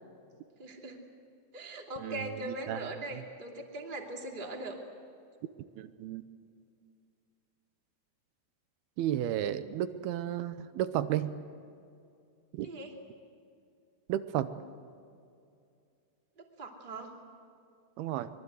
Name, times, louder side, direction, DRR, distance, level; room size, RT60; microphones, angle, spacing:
voice 1, 0.6-1.0 1.5-4.8 12.6-12.9 16.4-17.1, right 1 dB, 15° right, 1 dB, 1.9 m, -40 dB
voice 2, 2.0-3.2 5.8-6.2 9.0-11.4 12.6-12.7 14.1-14.5 18.0-18.3, right 11 dB, 80° right, 12 dB, 2.5 m, -33 dB
25.5 x 22.5 x 8.1 m, 2.4 s
omnidirectional pair, 5.0 m